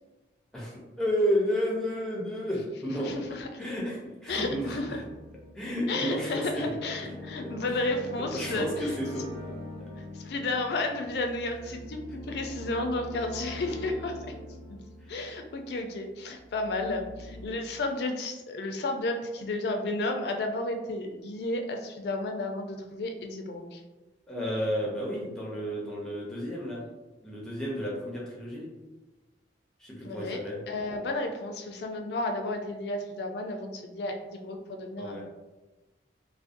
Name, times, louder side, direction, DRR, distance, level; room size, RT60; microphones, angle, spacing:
voice 1, 0.5-3.1 3.6-5.0 5.5-6.7 8.3-9.5 24.3-26.8 27.2-28.7 29.8-30.6 35.0-35.2, equal, 5° left, -4 dB, 0.5 m, -31 dB
voice 2, 3.0-3.8 4.3-5.0 5.9-9.0 9.5-9.9 10.1-14.2 15.1-23.8 30.0-35.2, left 2 dB, 60° left, 4 dB, 0.3 m, -32 dB
sound 1, 4.3-15.9 16.4-17.5, left 1 dB, 30° right, 0.9 m, -43 dB
2.5 x 2.0 x 2.5 m, 1.1 s
head